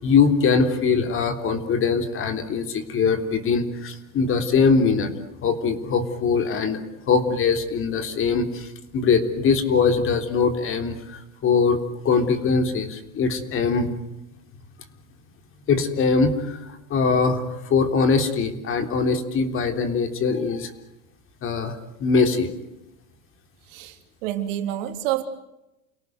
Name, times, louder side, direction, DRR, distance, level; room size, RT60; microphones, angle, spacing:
voice 1, 0.0-5.1 5.4-6.8 7.1-11.8 12.0-13.9 15.7-20.7 21.4-21.7 22.0-22.5, left 5 dB, 30° left, 7 dB, 3.7 m, -22 dB
voice 2, 23.7-25.2, right 13 dB, 65° right, 7 dB, 3.4 m, -28 dB
30.0 x 18.0 x 9.5 m, 0.93 s
supercardioid pair, 135°, 41 cm